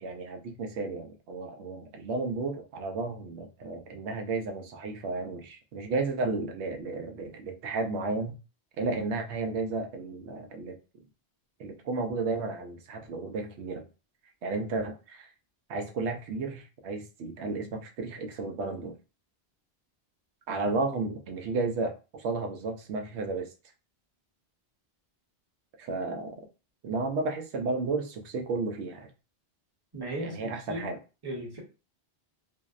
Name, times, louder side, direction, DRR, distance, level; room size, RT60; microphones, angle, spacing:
voice 1, 0.0-8.4 8.8-10.8 11.6-13.9 14.4-15.3 15.7-18.9 20.5-23.5 25.8-26.3 26.8-29.1 30.2-31.0, right 3 dB, 80° right, 0.9 m, -33 dB
voice 2, 29.9-30.9 31.2-31.6, right 1 dB, 25° right, 0.7 m, -36 dB
2.6 x 2.0 x 2.3 m
omnidirectional pair, 1.1 m